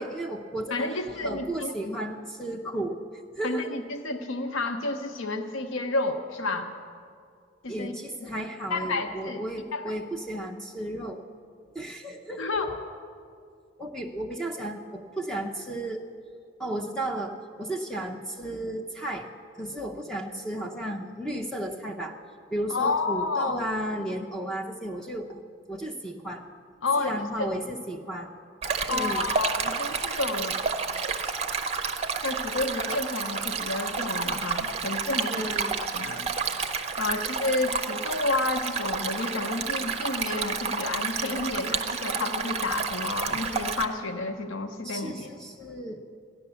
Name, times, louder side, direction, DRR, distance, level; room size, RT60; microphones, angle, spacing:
voice 1, 0.0-3.0 3.3-3.7 7.7-11.2 11.7-12.5 13.8-16.1 16.6-19.3 19.6-22.1 22.5-25.4 25.7-26.4 27.0-28.3 28.9-29.3 35.3-35.8 44.8-46.1, right 1 dB, 5° left, 0 dB, 0.6 m, -34 dB
voice 2, 0.7-1.7 3.4-6.7 7.6-8.0 8.7-9.4 9.7-9.8 12.4-12.7 22.7-23.6 26.8-27.5 28.9-30.6 32.2-35.5 35.9-36.3 37.0-45.3, left 3 dB, 85° left, 6 dB, 0.8 m, -30 dB
Stream, 28.6-43.9, right 5 dB, 30° right, 0.7 m, -30 dB
14.0 x 10.5 x 7.0 m, 2.3 s
head